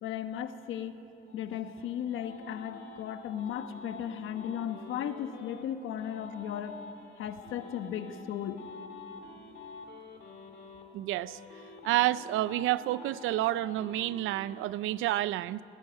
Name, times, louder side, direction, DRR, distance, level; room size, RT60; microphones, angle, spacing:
voice 1, 0.0-1.0 1.3-6.8 7.2-8.6, left 9 dB, 85° left, 9 dB, 1.2 m, -36 dB
sound 1, 1.3-5.6 6.0-10.8 11.2-14.6, left 4 dB, 65° left, 2.5 m, -48 dB
voice 2, 10.9-11.4 11.8-15.6, right 15 dB, 90° right, 18 dB, 0.5 m, -29 dB
19.5 x 16.0 x 8.9 m, 2.9 s
cardioid pair, 90°, 20 cm